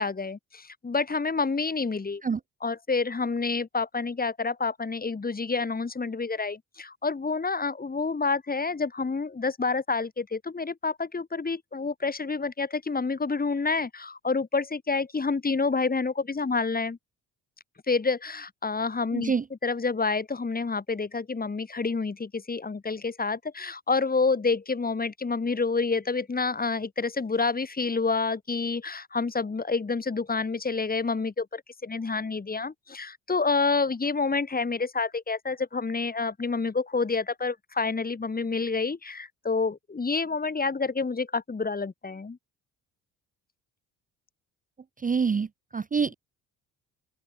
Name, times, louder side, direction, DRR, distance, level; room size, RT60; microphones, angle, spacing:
voice 1, 0.0-2.2 2.6-17.0 17.9-19.3 19.6-42.4, left 4 dB, 25° left, 2.0 m, -28 dB
voice 2, 19.1-19.4 45.0-45.5 45.7-46.1, right 5 dB, 20° right, 0.7 m, -26 dB
open air
supercardioid pair, 65°, 38 cm